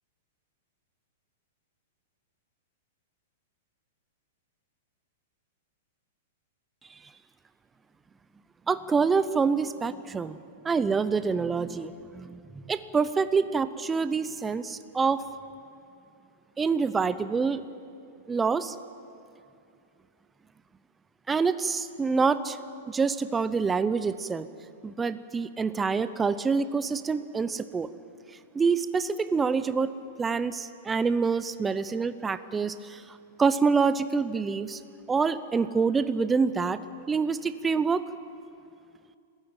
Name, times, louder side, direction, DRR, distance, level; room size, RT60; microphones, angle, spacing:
voice 1, 8.7-10.4 10.6-15.2 16.6-17.6 18.3-18.7 21.3-22.6 22.9-24.5 24.8-27.9 28.5-29.9 30.2-34.8 35.1-36.8 37.1-38.0, right 5 dB, 10° right, 13 dB, 0.6 m, -26 dB
26.5 x 14.5 x 8.9 m, 2.5 s
hypercardioid pair, 150°, 0 cm